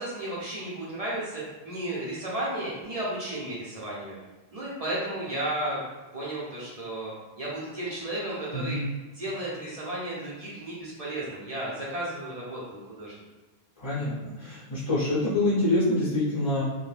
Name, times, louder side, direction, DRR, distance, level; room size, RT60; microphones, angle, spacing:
voice 1, 0.0-4.2 4.5-5.8 6.1-8.8 9.1-13.1, right 1 dB, 45° right, -6 dB, 0.6 m, -33 dB
voice 2, 8.5-8.9 13.8-16.6, left 2 dB, 30° left, -11 dB, 0.7 m, -26 dB
2.6 x 2.1 x 3.2 m, 1.2 s
omnidirectional pair, 1.1 m